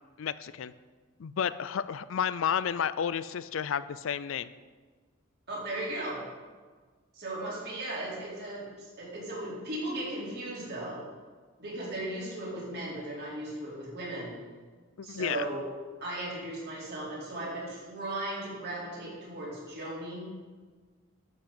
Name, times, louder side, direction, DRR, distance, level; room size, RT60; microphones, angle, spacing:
voice 1, 0.2-0.7 1.2-4.5 15.0-15.4, left 8 dB, 65° left, 15 dB, 0.4 m, -31 dB
voice 2, 5.5-6.2 7.1-11.0 11.6-14.4 15.0-15.6 16.0-20.3, right 1 dB, 50° right, -5 dB, 4.0 m, -37 dB
12.0 x 6.1 x 7.1 m, 1.5 s
head